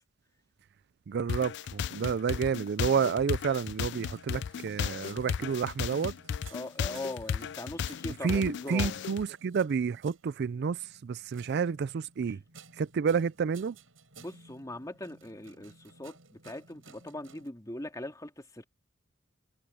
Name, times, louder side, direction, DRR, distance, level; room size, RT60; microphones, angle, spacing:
voice 1, 1.1-6.1 8.2-12.4 12.8-13.8, right 6 dB, 55° right, 0.3 m, -30 dB
sound 1, 1.3-9.2, left 7 dB, 60° left, 0.4 m, -34 dB
sound 2, 3.4-17.5, right 4 dB, 85° right, 7.1 m, -57 dB
voice 2, 6.5-9.0 12.3-12.4 14.2-18.6, left 1 dB, 15° left, 2.3 m, -41 dB
head